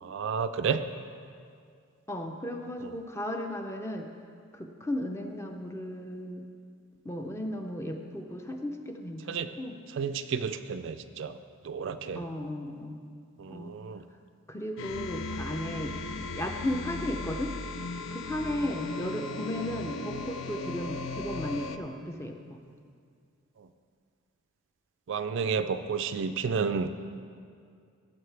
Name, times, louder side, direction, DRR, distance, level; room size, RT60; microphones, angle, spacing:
voice 1, 0.0-0.8 9.3-9.5 10.0-11.3 11.6-12.2 13.4-14.0 25.1-26.9, right 6 dB, 60° right, 10 dB, 0.4 m, -31 dB
voice 2, 2.1-4.1 4.5-6.5 7.0-9.8 12.1-13.0 13.5-13.8 14.5-17.5 18.1-22.6, left 1 dB, 15° left, 4 dB, 0.5 m, -35 dB
sound 1, 14.8-21.8, left 3 dB, 60° left, 0.4 m, -37 dB
14.0 x 7.2 x 3.3 m, 2.2 s
head